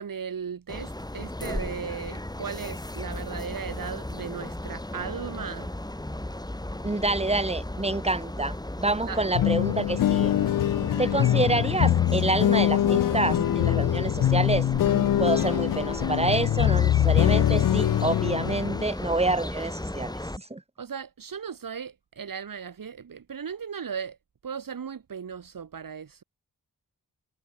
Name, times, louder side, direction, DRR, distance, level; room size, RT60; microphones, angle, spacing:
voice 1, 0.0-5.7 9.1-9.4 20.8-24.2 24.4-26.2, right 7 dB, 65° right, 1.4 m, -37 dB
sound 1, 0.7-20.4, left 1 dB, 10° left, 2.8 m, -35 dB
voice 2, 6.8-10.3 11.0-14.7 15.2-20.6, right 2 dB, 15° right, 2.0 m, -27 dB
sound 2, 9.4-18.8, left 12 dB, 65° left, 0.5 m, -23 dB
wide cardioid pair, 85°, 36 cm